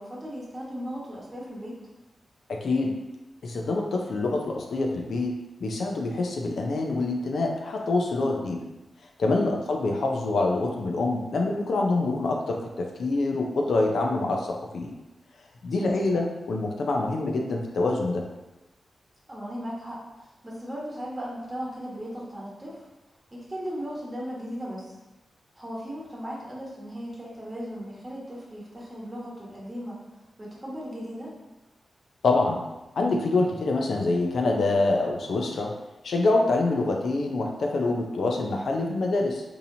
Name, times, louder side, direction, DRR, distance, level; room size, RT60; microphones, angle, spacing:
voice 1, 0.0-1.8 9.4-9.5 15.8-16.1 19.3-22.9 23.3-25.0 25.5-30.0 30.4-31.3, equal, 25° right, -6 dB, 1.2 m, -37 dB
voice 2, 2.5-3.0 3.4-5.3 5.6-8.6 9.2-14.9 15.6-18.2 32.2-32.6 33.0-35.7 36.0-39.4, left 2 dB, 75° left, 1 dB, 0.5 m, -25 dB
4.1 x 2.8 x 2.7 m, 1.0 s
wide cardioid pair, 105°, 0 cm